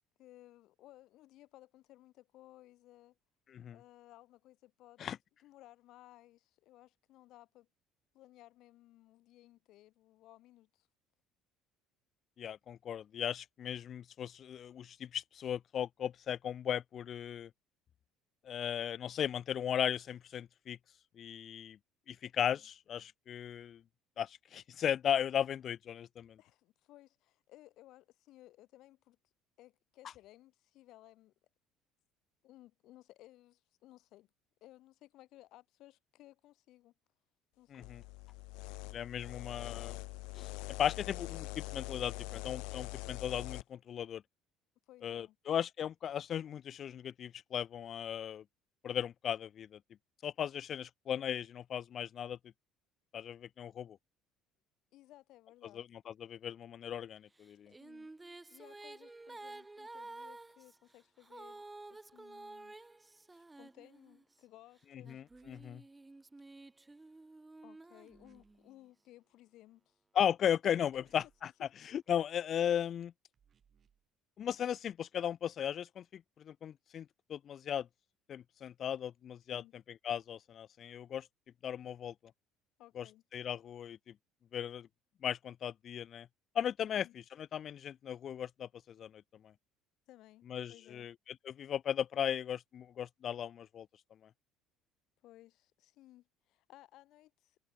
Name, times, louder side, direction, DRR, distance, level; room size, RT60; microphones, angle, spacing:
voice 1, 0.2-3.2 3.7-5.1 5.4-7.7 8.1-10.9 26.4-29.2 29.6-31.3 32.4-34.3 34.6-36.9 37.6-37.9 44.9-45.4 54.9-55.8 57.8-58.1 58.5-61.6 61.9-62.9 63.3-65.2 67.6-70.0 70.9-71.1 71.4-71.7 79.5-79.7 82.8-83.2 86.9-87.2 90.1-91.1 95.2-97.6, left 16 dB, 55° left, 3.9 m, -59 dB
voice 2, 12.4-17.5 18.4-20.8 21.2-21.8 22.1-23.8 24.2-26.4 37.7-38.0 38.9-40.0 40.3-40.5 40.8-44.2 45.0-48.4 48.8-49.8 50.2-52.4 53.1-54.0 55.7-57.7 65.1-65.8 70.1-71.5 71.8-73.1 74.4-77.9 78.3-79.6 80.0-81.3 81.6-82.1 83.0-83.1 83.3-84.1 84.5-84.9 85.2-86.3 86.5-89.5 90.5-93.9, left 9 dB, 30° left, 0.4 m, -37 dB
sound 1, 37.8-43.6, left 29 dB, 85° left, 1.0 m, -43 dB
Female singing, 57.4-64.3 65.0-68.8, right 2 dB, 10° right, 1.3 m, -52 dB
sound 2, 65.3-65.8 68.1-68.7 70.9-71.5 73.3-74.1, right 7 dB, 25° right, 3.5 m, -71 dB
cardioid pair, 175°, 0 cm